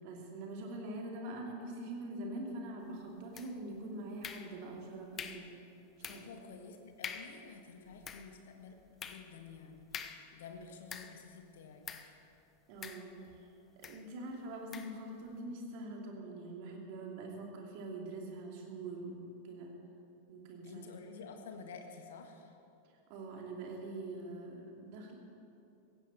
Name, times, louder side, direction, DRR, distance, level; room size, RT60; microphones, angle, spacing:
voice 1, 0.0-5.6 6.0-6.3 12.0-12.1 12.7-13.2 13.8-19.8 20.3-20.8 23.1-25.1, right 2 dB, 45° right, 1 dB, 2.8 m, -44 dB
sound 1, 3.3-3.8 4.2-4.8 5.2-5.5 6.0-6.4 6.7-6.8 7.0-7.4 7.9-11.3 11.8-12.2 12.8-13.4 13.8-14.1 14.7-15.0, left 7 dB, 25° left, 0.9 m, -46 dB
voice 2, 6.0-8.8 9.0-12.2 20.6-22.5, left 5 dB, 60° left, 5 dB, 1.7 m, -51 dB
17.0 x 15.5 x 4.4 m, 2.7 s
figure-of-eight pair, 90°, 0 cm